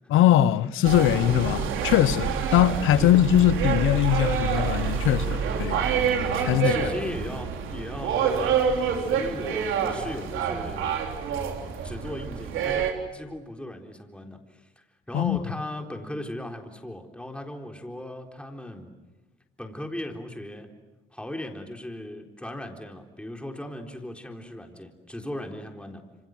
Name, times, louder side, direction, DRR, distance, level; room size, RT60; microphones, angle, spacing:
voice 1, 0.1-5.9 6.4-6.9 15.1-15.4, left 12 dB, 90° left, 0.9 m, -21 dB
sound 1, 0.8-12.9, right 7 dB, 85° right, 3.6 m, -27 dB
voice 2, 6.6-11.0 11.8-18.9 19.6-20.8 21.1-26.0, left 1 dB, 5° left, 3.9 m, -38 dB
27.0 x 26.0 x 7.7 m
cardioid pair, 90°, 20 cm